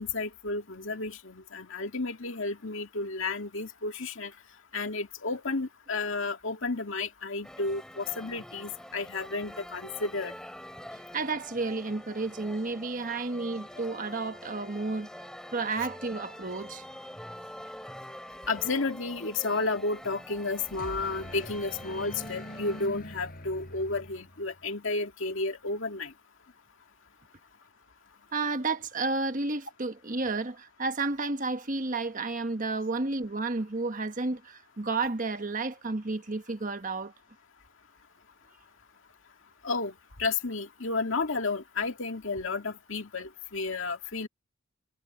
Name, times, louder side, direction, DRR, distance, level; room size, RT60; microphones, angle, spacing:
voice 1, 0.0-4.3 4.7-10.3 18.5-26.1 39.6-44.3, left 3 dB, 70° left, 2.1 m, -32 dB
sound 1, 7.4-22.9, equal, 5° left, 4.3 m, -45 dB
voice 2, 11.1-15.1 15.5-16.8 28.3-37.1, right 3 dB, 40° right, 1.3 m, -31 dB
sound 2, 20.2-24.7, left 1 dB, 45° left, 5.9 m, -44 dB
head